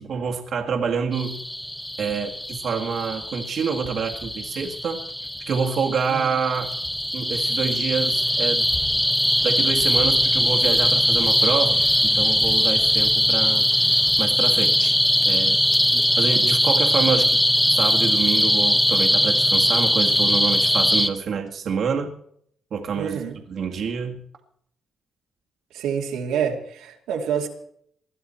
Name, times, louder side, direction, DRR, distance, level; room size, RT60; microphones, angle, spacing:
voice 1, 0.0-1.4 2.0-5.0 5.5-6.7 7.1-8.7 9.4-11.8 12.0-13.7 14.2-15.0 15.2-15.6 16.2-17.4 17.7-22.1 22.7-23.2 23.5-24.2, right 6 dB, 60° right, 2 dB, 2.0 m, -27 dB
sound 1, 1.1-21.1, equal, 5° left, 1.5 m, -21 dB
voice 2, 22.9-23.4 25.7-27.5, right 7 dB, 90° right, 2 dB, 2.4 m, -27 dB
20.5 x 12.0 x 4.4 m, 0.66 s
cardioid pair, 90°, 0 cm